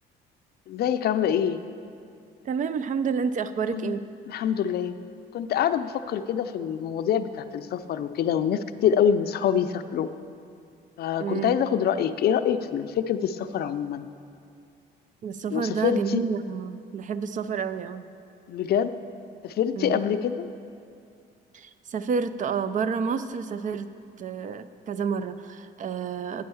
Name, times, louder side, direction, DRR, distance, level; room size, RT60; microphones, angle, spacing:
voice 1, 0.7-1.6 3.7-3.9 4.3-5.0 5.3-10.1 11.0-14.1 15.5-16.2 18.5-18.9 19.4-20.5, left 8 dB, 55° left, 11 dB, 0.4 m, -25 dB
voice 2, 2.4-4.0 11.2-11.6 15.2-18.0 19.8-20.0 21.5-23.9 24.2-26.4, right 6 dB, 45° right, 12 dB, 0.4 m, -29 dB
8.7 x 5.5 x 6.9 m, 2.4 s
cardioid pair, 100°, 19 cm